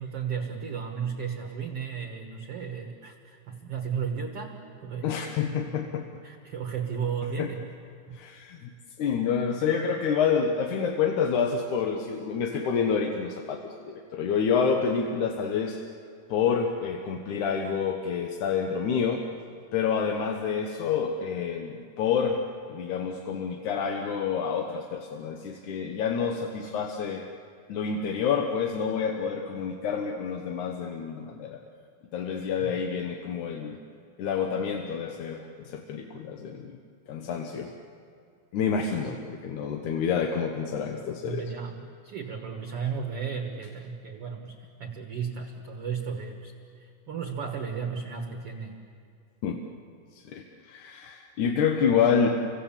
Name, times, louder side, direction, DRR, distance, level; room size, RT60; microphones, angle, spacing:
voice 1, 0.0-5.3 6.2-7.6 8.1-8.2 32.6-32.7 39.1-39.2 41.2-46.5 46.8-48.8, right 6 dB, 55° right, 3 dB, 1.8 m, -34 dB
voice 2, 5.0-6.0 7.4-7.5 8.1-8.7 9.0-15.8 16.3-19.2 19.7-22.4 22.7-27.2 27.7-31.6 32.1-33.8 34.2-36.8 37.1-37.7 38.5-41.4 49.4-49.6 50.1-52.3, left 6 dB, 65° left, 3 dB, 2.2 m, -28 dB
30.0 x 25.0 x 7.4 m, 2.3 s
omnidirectional pair, 4.4 m